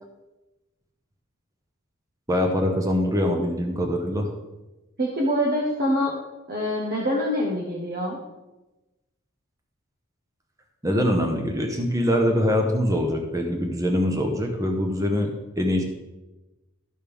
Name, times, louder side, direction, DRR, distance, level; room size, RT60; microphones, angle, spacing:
voice 1, 2.3-4.3 10.8-15.8, equal, 15° right, 2 dB, 0.9 m, -23 dB
voice 2, 5.0-6.1 6.5-8.2, equal, 45° right, -2 dB, 1.2 m, -25 dB
12.5 x 6.6 x 3.5 m, 1.1 s
head